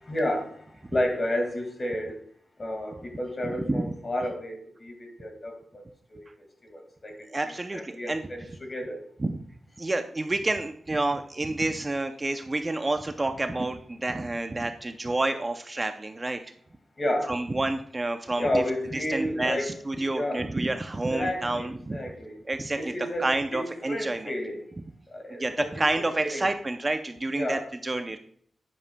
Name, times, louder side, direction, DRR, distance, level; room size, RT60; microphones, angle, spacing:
voice 1, 0.0-2.2 2.6-5.8 6.1-6.3 6.6-9.0 12.5-12.6 17.0-17.4 18.4-20.5 21.1-22.4 22.7-24.6 25.1-26.5 27.3-27.7, left 1 dB, 35° left, 4 dB, 1.9 m, -31 dB
voice 2, 3.4-3.8 7.3-8.2 9.2-9.4 9.8-16.4 17.3-18.6 18.9-22.0 22.5-22.9 23.2-24.3 25.3-28.2, right 2 dB, 25° right, 7 dB, 0.5 m, -29 dB
10.5 x 9.8 x 2.2 m, 0.62 s
wide cardioid pair, 125°, 0 cm